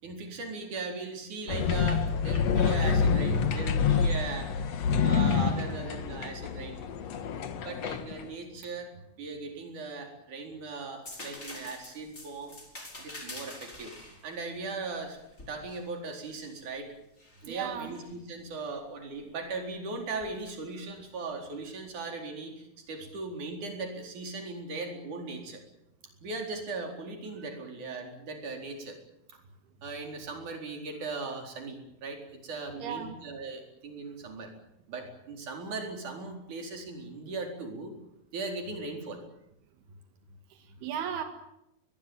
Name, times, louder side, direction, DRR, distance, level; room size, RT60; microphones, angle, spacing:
voice 1, 0.0-4.5 5.0-6.8 7.6-12.6 13.0-14.0 14.2-15.2 15.5-16.9 17.4-25.6 26.2-29.0 29.3-29.4 29.8-34.5 34.9-37.9 38.3-39.2, right 3 dB, 50° right, 3 dB, 5.6 m, -38 dB
sound 1, 1.5-8.3, left 6 dB, 55° left, 2.1 m, -27 dB
sound 2, 11.0-16.6 17.2-18.1 20.2-20.4, left 2 dB, 20° left, 5.3 m, -46 dB
voice 2, 17.4-18.0 32.8-33.2 40.5-41.2, right 9 dB, 85° right, 6 dB, 3.7 m, -36 dB
23.0 x 21.0 x 9.3 m, 0.84 s
omnidirectional pair, 4.5 m